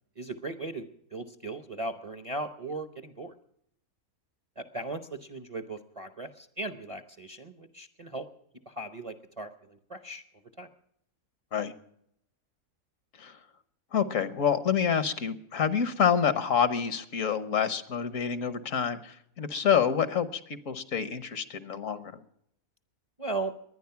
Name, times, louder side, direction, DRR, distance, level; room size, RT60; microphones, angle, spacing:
voice 1, 0.2-3.3 4.6-8.3 8.7-10.2 10.6-10.7 23.2-23.5, right 2 dB, 30° right, 9 dB, 0.7 m, -37 dB
voice 2, 13.9-20.4 20.7-22.1, left 7 dB, 65° left, 13 dB, 1.4 m, -27 dB
22.0 x 10.0 x 5.8 m, 0.71 s
omnidirectional pair, 1.5 m